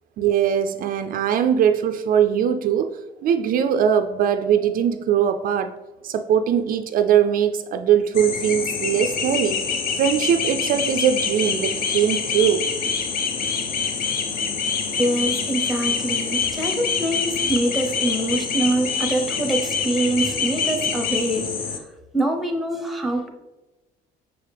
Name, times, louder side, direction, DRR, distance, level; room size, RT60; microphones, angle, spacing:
voice 1, 0.2-5.7 6.0-9.6 10.0-12.6, right 8 dB, 60° right, 7 dB, 0.4 m, -21 dB
sound 1, 8.1-21.8, left 5 dB, 60° left, 0.8 m, -25 dB
voice 2, 15.0-21.8 22.1-23.3, right 1 dB, ahead, 4 dB, 0.7 m, -24 dB
6.1 x 4.8 x 3.4 m, 1.1 s
cardioid pair, 110°, 17 cm